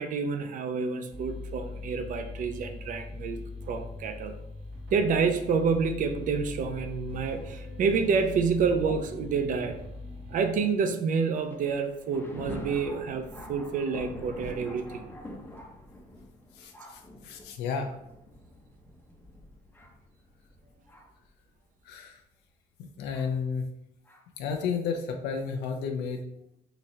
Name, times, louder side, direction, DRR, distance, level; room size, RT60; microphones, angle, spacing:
voice 1, 0.0-3.4 3.7-4.3 4.9-9.8 10.3-15.0, right 5 dB, 50° right, 7 dB, 0.5 m, -28 dB
sound 1, 1.1-10.9, left 3 dB, 75° right, 0.9 m, -41 dB
Thunder, 11.3-21.3 22.0-22.1 23.1-23.3 24.1-24.2, left 1 dB, 10° left, 0.7 m, -45 dB
voice 2, 16.5-17.9 21.8-22.2 22.8-23.7 24.4-26.2, left 5 dB, 85° left, 3 dB, 0.5 m, -32 dB
3.9 x 2.8 x 3.1 m, 0.82 s
cardioid pair, 110°, 17 cm